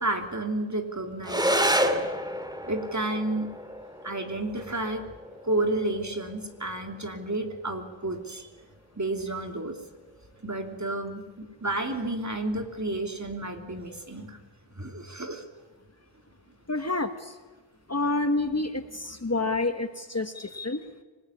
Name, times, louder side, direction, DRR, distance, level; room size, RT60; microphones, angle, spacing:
voice 1, 0.0-2.1 2.6-3.5 4.0-5.0 5.4-8.5 9.0-9.8 10.4-14.4 14.7-15.4, right 2 dB, 35° right, 5 dB, 3.2 m, -31 dB
sound 1, 1.2-10.2, equal, 10° right, 2.1 m, -32 dB
voice 2, 16.7-17.4 17.9-20.8, left 2 dB, 30° left, 8 dB, 1.5 m, -28 dB
25.5 x 19.5 x 9.9 m, 1.3 s
wide cardioid pair, 75°, 49 cm